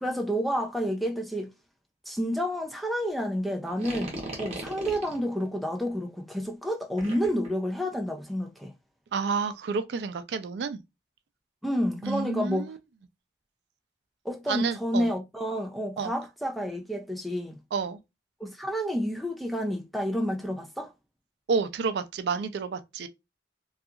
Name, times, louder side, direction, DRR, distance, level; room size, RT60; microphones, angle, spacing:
voice 1, 0.0-1.5 2.1-8.7 11.6-12.7 14.2-17.6 18.4-20.9, equal, ahead, 0.3 m, -30 dB
sound 1, 3.7-5.2 7.0-7.5, right 1 dB, 35° right, 0.8 m, -37 dB
voice 2, 9.1-10.8 12.0-12.8 14.5-15.1 16.0-16.1 17.7-18.0 21.5-23.1, right 5 dB, 80° right, 0.3 m, -30 dB
2.7 x 2.4 x 2.3 m
head